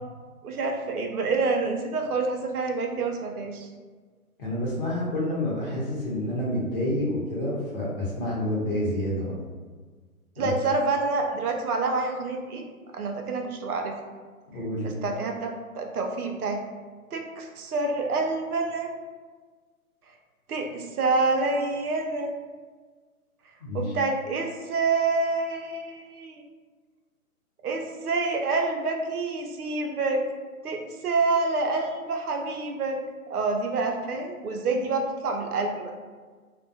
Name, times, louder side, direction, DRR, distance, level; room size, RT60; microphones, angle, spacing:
voice 1, 0.4-3.7 10.4-12.6 12.9-13.9 14.8-16.6 17.1-18.9 20.5-22.3 23.7-26.4 27.6-30.2 30.6-33.0 33.3-35.9, right 3 dB, 85° right, 3 dB, 0.6 m, -27 dB
voice 2, 4.4-9.3 10.4-10.5 14.5-14.9 23.6-23.8, left 1 dB, 40° left, -5 dB, 0.8 m, -28 dB
2.2 x 2.1 x 2.6 m, 1.5 s
hypercardioid pair, 150°, 44 cm